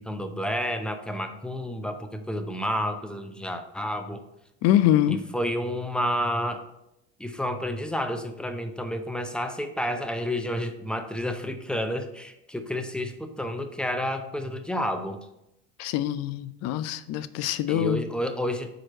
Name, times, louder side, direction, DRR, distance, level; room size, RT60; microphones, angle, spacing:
voice 1, 0.0-4.2 5.1-6.6 7.2-15.3 17.7-18.7, equal, 5° left, 7 dB, 0.6 m, -30 dB
voice 2, 4.6-5.2 15.8-18.0, left 12 dB, 55° left, 15 dB, 0.5 m, -24 dB
4.9 x 4.5 x 4.3 m, 0.84 s
supercardioid pair, 90°, 32 cm